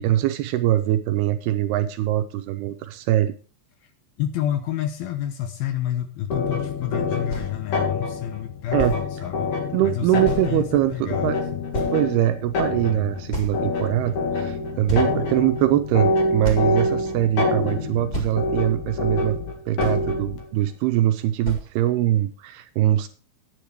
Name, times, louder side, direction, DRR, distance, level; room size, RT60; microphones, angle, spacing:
voice 1, 0.0-3.3 8.7-8.9 9.7-11.4 11.9-19.4 19.7-23.1, right 13 dB, 80° right, 8 dB, 2.4 m, -22 dB
voice 2, 4.2-9.5 9.8-11.6 14.9-15.2, left 11 dB, 75° left, 9 dB, 2.4 m, -29 dB
sound 1, 6.3-20.4, left 3 dB, 55° left, 2.6 m, -26 dB
sound 2, 7.3-7.5 8.4-8.5 8.8-9.0 10.2-10.5 11.1-11.2 11.7-12.3 13.3-13.9 14.4-14.5 14.9-15.5 16.0-16.1 16.4-16.8 17.6-17.7 18.1-18.3 19.4-19.5 19.8-20.1 21.1-21.2 21.4-21.7, right 1 dB, 20° left, 1.2 m, -30 dB
10.0 x 9.3 x 4.5 m, 0.37 s
omnidirectional pair, 5.0 m